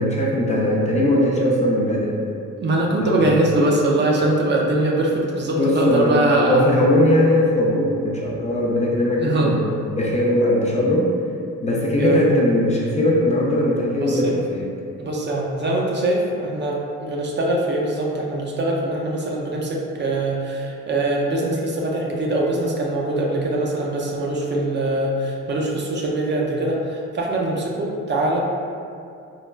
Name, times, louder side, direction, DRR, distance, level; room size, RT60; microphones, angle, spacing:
voice 1, 0.0-2.2 3.0-3.5 5.6-6.2 6.5-11.1 11.6-14.7, left 1 dB, 25° left, -4 dB, 0.4 m, -20 dB
voice 2, 2.6-6.6 9.2-9.6 11.9-12.2 14.0-14.3 15.0-28.4, right 2 dB, 40° right, -2 dB, 0.4 m, -22 dB
3.1 x 2.2 x 2.2 m, 2.4 s
cardioid pair, 90°, 30 cm